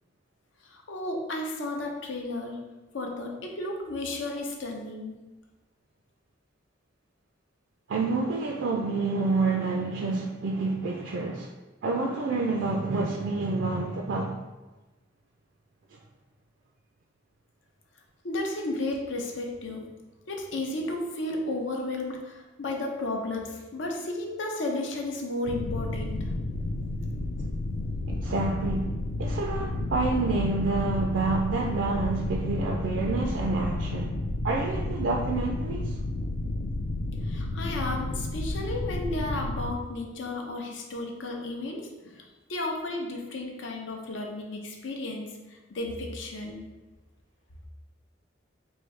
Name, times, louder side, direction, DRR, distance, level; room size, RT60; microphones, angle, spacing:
voice 1, 0.6-2.6 2.9-5.1 18.2-19.8 20.3-26.2 37.2-42.2 42.5-46.6, left 2 dB, 80° left, 0.7 m, -33 dB
voice 2, 7.9-11.5 11.8-14.4 15.9-16.0 28.1-28.9 29.2-34.1 34.4-36.0, right 3 dB, 70° right, 0.4 m, -28 dB
sound 1, 25.5-39.7, left 2 dB, 60° left, 0.3 m, -31 dB
4.7 x 2.7 x 3.1 m
head